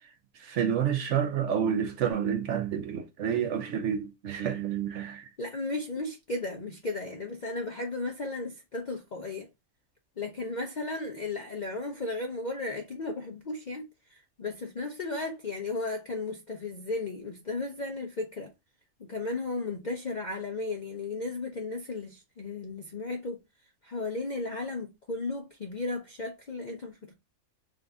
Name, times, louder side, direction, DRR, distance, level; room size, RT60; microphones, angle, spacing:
voice 1, 0.4-5.3, right 8 dB, 65° right, 0.9 m, -29 dB
voice 2, 5.1-9.5 10.2-13.8 14.1-18.5 19.0-23.4 23.8-27.1, left 2 dB, 55° left, 0.5 m, -35 dB
3.8 x 2.5 x 3.4 m
omnidirectional pair, 1.5 m